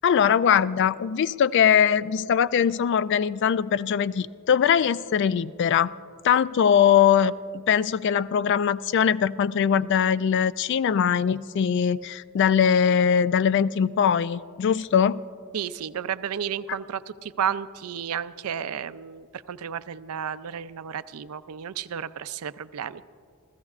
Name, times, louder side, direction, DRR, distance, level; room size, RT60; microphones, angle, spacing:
voice 1, 0.0-5.9 6.2-15.2, left 8 dB, 55° left, 17 dB, 0.3 m, -21 dB
voice 2, 15.5-23.0, right 8 dB, 80° right, 14 dB, 0.4 m, -32 dB
27.5 x 15.5 x 2.4 m, 2.4 s
head